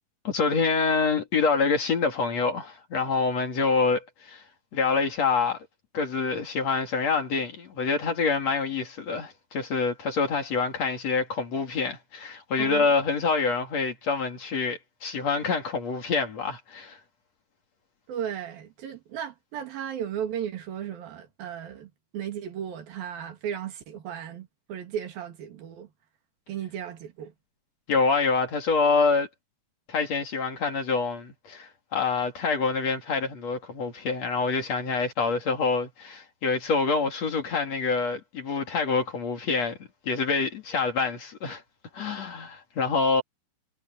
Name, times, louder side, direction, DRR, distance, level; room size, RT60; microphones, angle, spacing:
voice 1, 0.2-4.4 4.7-5.7 5.9-17.0 27.9-29.3 29.9-39.8 40.0-41.6 41.9-43.2, left 4 dB, 50° left, 3.4 m, -26 dB
voice 2, 18.1-25.9 26.5-27.3, right 9 dB, 75° right, 4.1 m, -35 dB
omnidirectional pair, 4.2 m